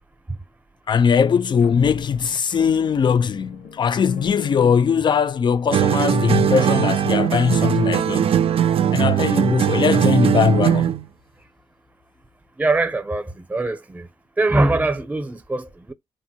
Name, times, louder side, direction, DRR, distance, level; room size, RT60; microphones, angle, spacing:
voice 1, 0.9-8.4 8.9-10.9, left 7 dB, 45° left, 0.3 m, -20 dB
sound 1, 1.4-5.6, left 7 dB, 85° left, 0.7 m, -39 dB
sound 2, 5.7-11.0, right 9 dB, 60° right, 0.4 m, -19 dB
voice 2, 9.1-9.5 12.6-14.1 14.4-15.9, right 2 dB, 15° right, 0.6 m, -23 dB
3.6 x 2.0 x 2.7 m
cardioid pair, 75°, 11 cm